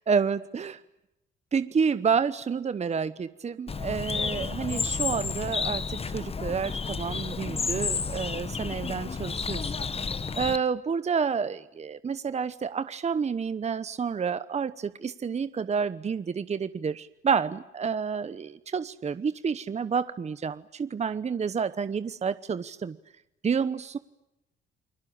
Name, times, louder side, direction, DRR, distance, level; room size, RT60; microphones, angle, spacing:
voice 1, 0.1-0.8 1.5-9.7 10.4-22.9 23.4-24.0, right 6 dB, 35° right, 14 dB, 0.9 m, -29 dB
Bird, 3.7-10.6, left 5 dB, 30° left, 1.1 m, -31 dB
29.5 x 21.5 x 8.7 m, 0.90 s
cardioid pair, 90°, 20 cm